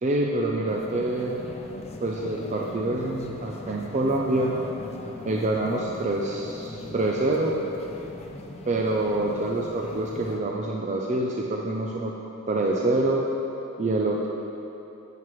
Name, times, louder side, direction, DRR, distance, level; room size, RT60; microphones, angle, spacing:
voice 1, 0.0-1.4 2.0-4.6 5.2-7.5 8.7-12.1 12.5-13.2 13.8-14.3, right 2 dB, 30° right, -1 dB, 0.5 m, -26 dB
sound 1, 0.7-10.4, left 1 dB, 30° left, 0.5 m, -40 dB
10.5 x 7.5 x 3.1 m, 2.9 s
head